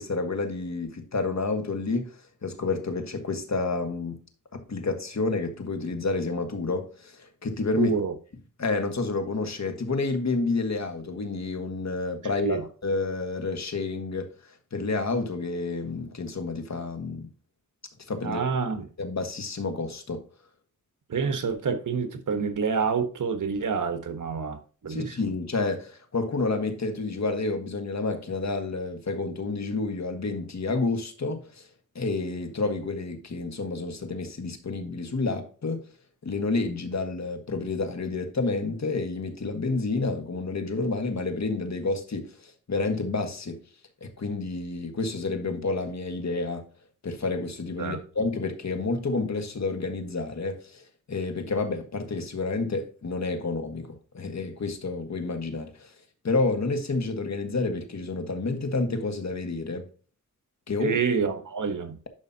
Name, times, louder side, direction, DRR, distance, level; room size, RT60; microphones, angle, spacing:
voice 1, 0.0-4.2 4.5-8.0 8.6-17.3 18.1-18.4 19.0-20.2 24.9-31.7 31.9-35.8 36.2-43.6 44.0-46.7 47.0-55.9 56.2-59.9 60.7-61.0, left 3 dB, 60° left, 1.7 m, -29 dB
voice 2, 7.8-8.1 12.4-12.6 18.2-18.9 21.1-25.1 47.8-48.0 60.8-62.0, right 5 dB, 80° right, 1.3 m, -28 dB
11.5 x 5.2 x 2.8 m
wide cardioid pair, 70°, 31 cm